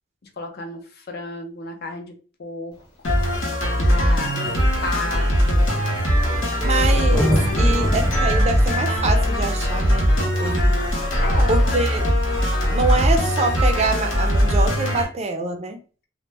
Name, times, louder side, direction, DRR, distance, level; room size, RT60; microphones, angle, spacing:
voice 1, 0.4-2.1 2.4-2.8 3.1-3.2 3.8-4.6 4.8-5.8 11.2-11.7, left 3 dB, 55° left, 4 dB, 0.5 m, -32 dB
Thunder, 2.8-2.9 3.8-3.9 4.2-11.5 13.2-13.3, equal, 20° left, 0.9 m, -28 dB
sound 1, 3.0-15.0, equal, 80° left, 0.9 m, -20 dB
voice 2, 6.6-10.1 10.4-10.8 11.5-12.1 12.7-15.8, right 3 dB, 35° right, 5 dB, 0.4 m, -25 dB
2.1 x 2.0 x 3.2 m, 0.38 s
head